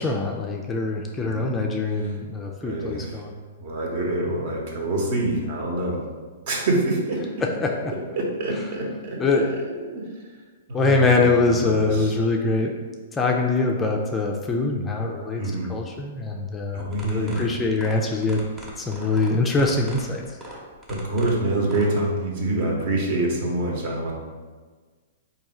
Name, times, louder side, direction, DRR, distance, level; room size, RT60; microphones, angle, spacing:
voice 1, 0.0-3.4 7.6-7.9 9.2-9.5 10.7-12.7 13.1-15.4 15.7-18.5 18.8-20.2, left 3 dB, 15° left, 1 dB, 0.4 m, -23 dB
voice 2, 2.6-3.2 3.6-6.0 6.4-7.2 8.2-10.1 10.7-12.1 15.4-15.8 16.7-17.5 20.9-24.1, right 2 dB, 55° right, -1 dB, 1.0 m, -26 dB
sound 1, 16.9-21.9, equal, 15° right, 0.8 m, -41 dB
3.5 x 2.7 x 4.2 m, 1.4 s
hypercardioid pair, 140°, 0 cm